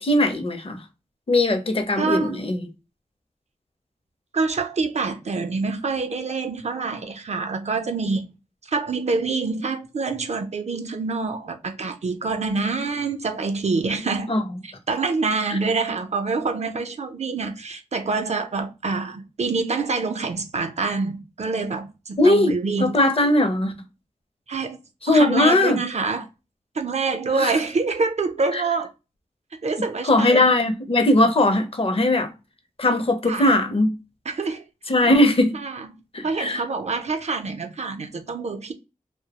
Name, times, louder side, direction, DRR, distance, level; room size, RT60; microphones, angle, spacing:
voice 1, 0.0-0.8 1.3-2.7 14.3-14.4 15.5-15.6 22.2-22.5 22.8-23.7 25.0-25.8 27.4-27.5 28.5-28.6 30.0-32.3 32.8-33.9 34.9-35.5 36.1-36.6, left 1 dB, 45° left, 0.5 m, -19 dB
voice 2, 2.0-2.4 4.3-8.3 8.6-14.3 14.6-22.9 24.5-24.8 25.1-26.3 26.7-28.9 29.6-30.4 33.3-33.6 34.3-34.6 35.1-35.2 35.5-35.9 36.2-38.7, right 4 dB, 55° right, 0.4 m, -26 dB
2.2 x 2.0 x 2.8 m
wide cardioid pair, 55°, 14 cm